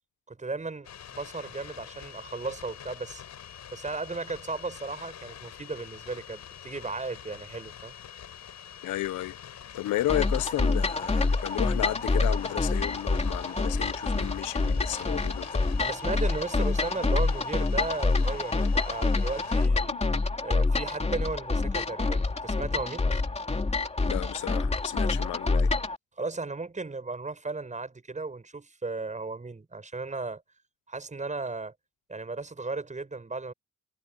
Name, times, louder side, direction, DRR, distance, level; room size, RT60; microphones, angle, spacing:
voice 1, 0.3-3.2 3.7-7.9 15.8-19.9 20.4-23.1 26.2-30.4 30.9-31.7 32.1-33.5, right 3 dB, 25° right, 7.6 m, -35 dB
sound 1, 0.8-19.7, left 9 dB, 65° left, 6.6 m, -46 dB
voice 2, 8.8-9.4 9.7-15.6 19.9-20.0 24.0-25.7, left 14 dB, 80° left, 1.0 m, -33 dB
sound 2, 10.1-26.0, left 3 dB, 20° left, 3.0 m, -27 dB
cardioid pair, 90°, 30 cm